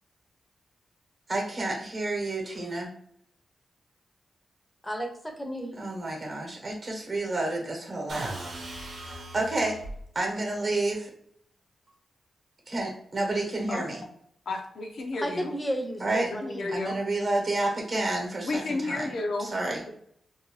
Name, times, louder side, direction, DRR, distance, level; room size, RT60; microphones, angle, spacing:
voice 1, 1.3-2.9 5.8-8.3 8.9-9.8 10.1-11.1 12.7-14.0 16.0-16.3 16.7-19.1 19.4-19.8, right 2 dB, 40° right, 0 dB, 0.9 m, -30 dB
voice 2, 4.8-5.8 15.2-16.7, equal, 15° left, 3 dB, 0.6 m, -33 dB
sound 1, 8.1-10.0, right 1 dB, 75° right, 0.9 m, -39 dB
voice 3, 14.5-15.5 16.3-17.0 18.4-19.5, left 2 dB, 70° left, 2 dB, 0.5 m, -32 dB
2.6 x 2.2 x 3.1 m, 0.69 s
cardioid pair, 90°, 0 cm